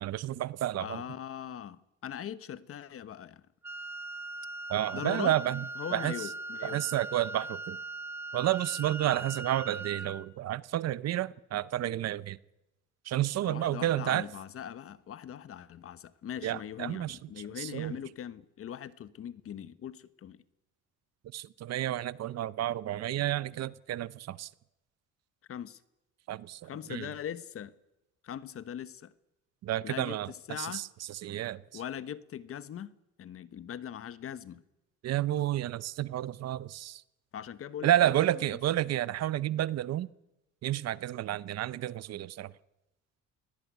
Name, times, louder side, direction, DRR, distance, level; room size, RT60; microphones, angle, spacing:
voice 1, 0.0-1.0 4.7-5.6 5.9-6.3 6.6-7.8 8.3-12.4 13.0-14.3 16.4-17.2 17.6-18.0 21.3-24.5 26.3-27.1 29.6-31.8 35.0-37.0 37.8-40.1 40.6-42.5, right 13 dB, 60° right, 0.8 m, -31 dB
voice 2, 0.8-3.4 4.9-5.3 5.8-6.8 13.4-20.4 25.5-25.8 26.6-27.7 28.2-29.1 29.8-30.8 31.7-32.9 33.2-34.6 37.3-38.3, left 9 dB, 50° left, 1.2 m, -41 dB
Wind instrument woodwind instrument, 3.6-10.3, right 2 dB, 5° right, 1.2 m, -40 dB
23.5 x 17.5 x 9.4 m
cardioid pair, 130°, 29 cm